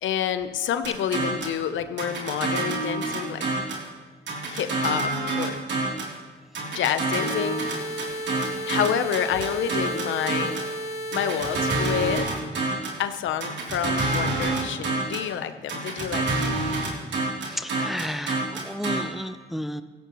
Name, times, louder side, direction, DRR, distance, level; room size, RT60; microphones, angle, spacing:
voice 1, 0.0-3.4 4.5-5.6 6.6-8.0 8.6-10.6 11.1-12.3 13.0-16.5, left 9 dB, 75° left, 10 dB, 0.9 m, -28 dB
sound 1, 0.8-1.6 2.0-3.9 4.3-6.2 6.5-10.7 11.1-13.0 13.4-15.3 15.7-19.0, right 2 dB, 65° right, 3.3 m, -27 dB
sound 2, 7.2-12.2, equal, 45° left, 4.6 m, -33 dB
voice 2, 17.5-19.8, left 1 dB, ahead, 10 dB, 0.6 m, -32 dB
17.0 x 16.0 x 3.1 m, 1.4 s
cardioid pair, 90°, 20 cm